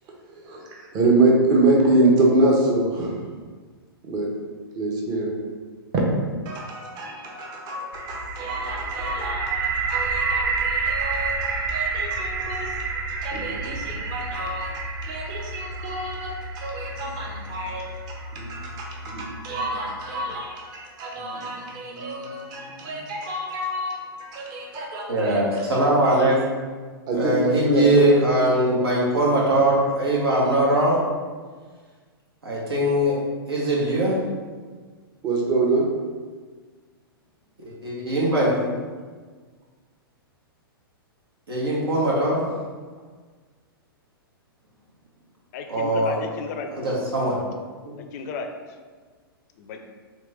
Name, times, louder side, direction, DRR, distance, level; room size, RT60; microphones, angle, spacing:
voice 1, 0.3-3.2 4.1-4.3 4.7-5.3 5.9-6.0 6.4-25.8 27.1-28.1 28.7-28.8 35.2-35.9, right 2 dB, 35° right, -1 dB, 0.8 m, -26 dB
sound 1, 7.9-19.8, right 4 dB, 60° right, 0.5 m, -29 dB
voice 2, 25.1-26.4 27.1-31.0 32.4-33.1 33.5-34.2 37.6-38.7 41.5-42.5 45.7-46.1 46.8-47.4 47.8-47.9, right 1 dB, 80° right, -5 dB, 1.2 m, -21 dB
voice 3, 45.5-47.0 48.1-48.5 49.6-49.8, left 5 dB, 45° left, 5 dB, 0.4 m, -33 dB
3.1 x 2.9 x 3.3 m, 1.5 s
hypercardioid pair, 115°, 13 cm